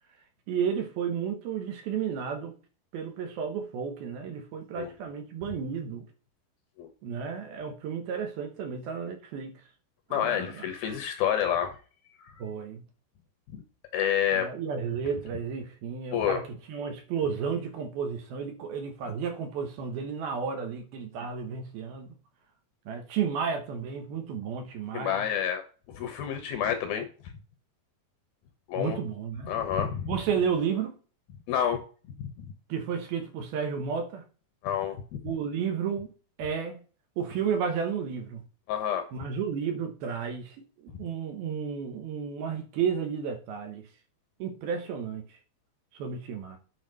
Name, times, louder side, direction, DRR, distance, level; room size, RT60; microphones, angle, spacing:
voice 1, 0.5-2.5 2.9-6.1 7.0-9.6 10.1-10.7 12.4-12.8 14.3-22.1 22.9-25.3 28.8-29.5 30.1-31.0 32.7-34.2 35.2-36.1 36.4-36.8 37.2-38.4 39.1-43.9 44.4-45.4 45.9-46.6, right 6 dB, 70° right, 2.9 m, -32 dB
voice 2, 10.1-11.8 12.2-12.3 13.5-13.6 13.9-14.5 16.1-16.4 24.9-25.6 25.9-27.1 28.7-29.0 29.5-30.1 31.5-31.8 32.2-32.5 34.6-35.0 38.7-39.1, left 9 dB, 70° left, 2.4 m, -28 dB
9.4 x 4.3 x 5.4 m
omnidirectional pair, 5.1 m